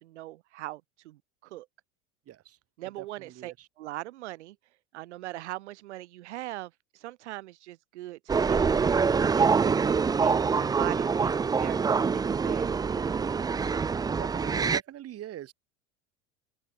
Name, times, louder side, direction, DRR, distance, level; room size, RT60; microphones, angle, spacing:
voice 1, 0.0-1.7 2.8-4.6 4.9-13.1, right 16 dB, 75° right, 2.8 m, -41 dB
voice 2, 2.3-2.6 3.0-3.7 13.6-13.8 14.2-15.5, right 12 dB, 45° right, 3.7 m, -42 dB
sound 1, 8.3-14.8, right 5 dB, 10° right, 0.4 m, -25 dB
open air
hypercardioid pair, 90°, 34 cm